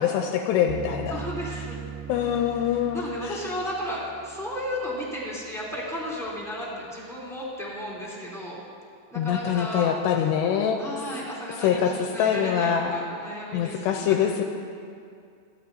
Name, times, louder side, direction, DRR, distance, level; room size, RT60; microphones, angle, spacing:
voice 1, 0.0-1.2 2.1-3.4 9.2-11.0 11.6-13.0 13.5-14.4, left 8 dB, 85° left, 3 dB, 2.7 m, -24 dB
sound 1, 0.7-5.8, right 7 dB, 85° right, 2.8 m, -40 dB
voice 2, 1.1-1.8 2.1-2.4 2.9-8.6 9.1-9.9 10.8-14.2, equal, ahead, -7 dB, 1.7 m, -34 dB
25.0 x 11.5 x 2.7 m, 2.3 s
omnidirectional pair, 5.1 m